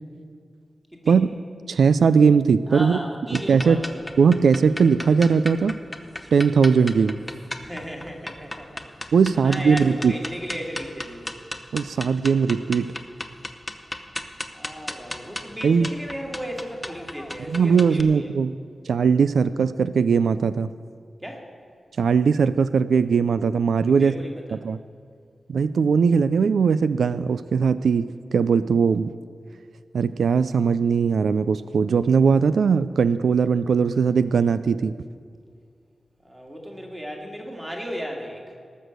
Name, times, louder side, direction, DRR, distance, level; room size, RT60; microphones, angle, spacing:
voice 1, 1.7-3.0 3.3-3.8 4.2-5.8 6.3-7.2 9.1-10.1 11.7-12.9 15.6-15.9 17.5-18.5 18.9-20.7 22.0-24.1 24.6-24.8 25.5-29.1 29.9-35.0, right 6 dB, 90° right, 14 dB, 0.3 m, -19 dB
voice 2, 2.7-4.1 7.6-9.1 9.4-11.4 14.5-18.3 21.2-21.5 23.8-24.6 36.2-38.6, equal, 10° right, 1 dB, 2.0 m, -35 dB
sound 1, 3.3-18.0, left 1 dB, 10° left, 0.8 m, -36 dB
18.5 x 6.4 x 7.8 m, 2.2 s
wide cardioid pair, 160°, 0 cm